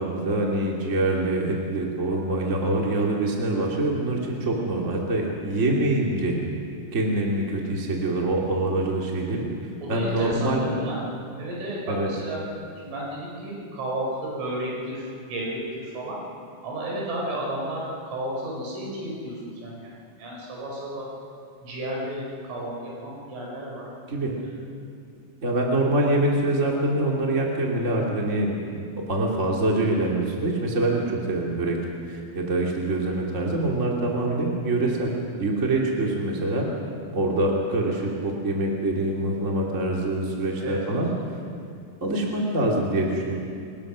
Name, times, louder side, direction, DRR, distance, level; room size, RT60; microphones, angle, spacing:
voice 1, 0.0-6.4 6.9-9.4 9.9-10.7 11.9-12.1 24.1-24.3 25.4-31.8 32.1-35.1 35.4-36.7 37.1-41.1 42.0-43.3, right 2 dB, 30° right, -2 dB, 1.4 m, -25 dB
voice 2, 9.8-11.1 11.4-12.4 12.8-16.2 16.6-21.1 21.6-23.9 40.6-41.0, right 1 dB, 75° right, -3 dB, 7.2 m, -32 dB
29.0 x 21.0 x 6.2 m, 2.4 s
omnidirectional pair, 5.7 m